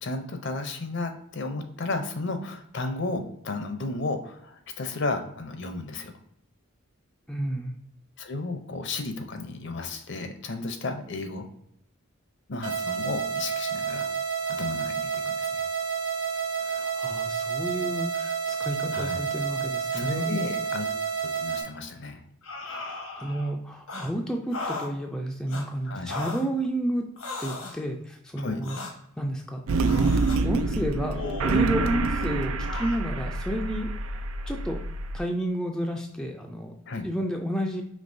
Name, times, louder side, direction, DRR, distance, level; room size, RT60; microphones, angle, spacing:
voice 1, 0.0-6.1 8.2-11.5 12.5-14.1 14.5-15.7 18.9-19.2 19.9-20.9 21.2-22.2 25.9-26.1 28.4-28.6 36.9-37.0, left 3 dB, 55° left, 7 dB, 0.6 m, -33 dB
voice 2, 7.3-7.7 16.6-20.4 22.6-27.1 27.4-28.8 29.2-29.6 29.9-30.1 30.4-33.9 34.5-34.8 35.1-36.7 37.0-37.8, right 1 dB, 5° left, 2 dB, 0.3 m, -31 dB
sound 1, 12.6-21.6, right 6 dB, 65° right, 0.8 m, -30 dB
sound 2, 22.4-23.5 23.9-24.1 24.5-24.9 25.5-25.6 26.1-26.5 27.2-27.8 28.6-28.9 29.8-30.4 31.1-31.9 32.7-33.0, left 3 dB, 90° left, 1.1 m, -36 dB
sound 3, 29.7-35.2, right 3 dB, 90° right, 0.4 m, -27 dB
5.3 x 3.1 x 2.6 m, 0.72 s
head